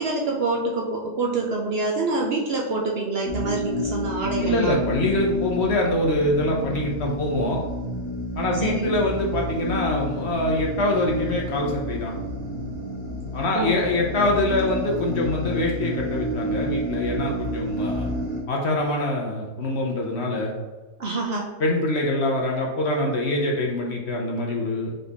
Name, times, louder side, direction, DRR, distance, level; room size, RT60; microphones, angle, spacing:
voice 1, 0.0-4.8 8.6-9.0 13.5-13.7 21.0-21.5, right 3 dB, 75° right, -1 dB, 0.5 m, -26 dB
sound 1, 3.2-18.4, equal, 55° right, 1.5 m, -30 dB
voice 2, 4.4-7.6 8.4-12.1 13.3-18.1 18.5-20.5 21.6-24.9, left 2 dB, 60° left, 0 dB, 0.7 m, -24 dB
4.0 x 3.7 x 3.4 m, 1.2 s
omnidirectional pair, 1.8 m